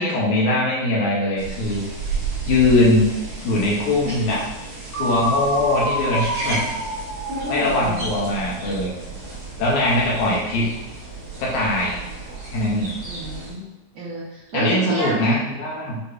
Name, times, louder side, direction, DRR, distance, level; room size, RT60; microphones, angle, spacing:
voice 1, 0.0-1.8 2.5-3.1 3.4-4.4 5.0-6.6 7.5-8.9 9.6-10.7 11.4-12.0 12.4-12.9 14.5-16.0, left 2 dB, 75° left, -4 dB, 2.0 m, -21 dB
sound 1, 1.4-13.5, right 3 dB, 55° right, 1.2 m, -33 dB
Fall - Rpg, 4.9-8.8, equal, 55° left, 1.4 m, -28 dB
voice 2, 7.6-8.1 13.1-15.2, right 1 dB, 75° right, -8 dB, 1.6 m, -31 dB
6.5 x 2.9 x 2.4 m, 1.0 s
omnidirectional pair, 3.9 m